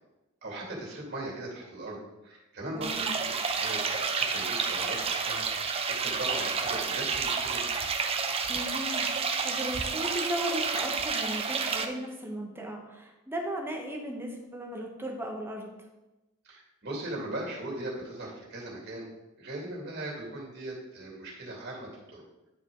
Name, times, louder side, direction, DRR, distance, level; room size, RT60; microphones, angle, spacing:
voice 1, 0.4-5.5 5.9-7.7 16.4-19.1 19.4-22.2, right 1 dB, 55° right, -3 dB, 2.7 m, -39 dB
voice 2, 2.7-3.1 8.5-9.1 9.4-15.7, equal, 10° right, 1 dB, 1.1 m, -36 dB
sound 1, 2.8-11.9, right 5 dB, 30° right, 0.6 m, -30 dB
9.9 x 4.9 x 3.9 m, 1.0 s
head